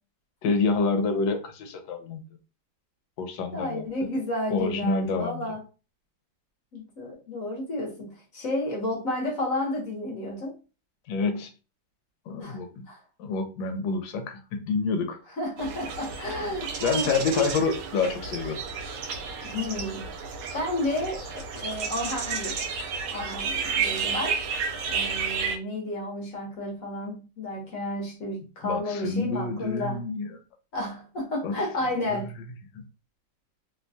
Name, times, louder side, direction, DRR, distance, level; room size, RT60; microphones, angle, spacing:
voice 1, 0.4-2.2 3.2-3.8 4.5-5.5 11.1-11.5 12.3-12.8 13.2-15.2 16.8-18.6 28.6-30.4 31.4-31.5 32.1-32.2 32.7-32.8, left 4 dB, 80° left, 1.3 m, -28 dB
voice 2, 3.5-5.6 6.7-10.6 12.4-12.6 12.9-13.0 15.4-17.1 17.4-17.5 19.4-20.1 20.5-22.7 23.1-24.4 24.9-30.1 30.7-32.4, left 1 dB, 55° left, 1.1 m, -31 dB
sound 1, 15.6-25.6, right 5 dB, 80° right, 1.3 m, -32 dB
3.2 x 2.2 x 2.6 m
omnidirectional pair, 2.1 m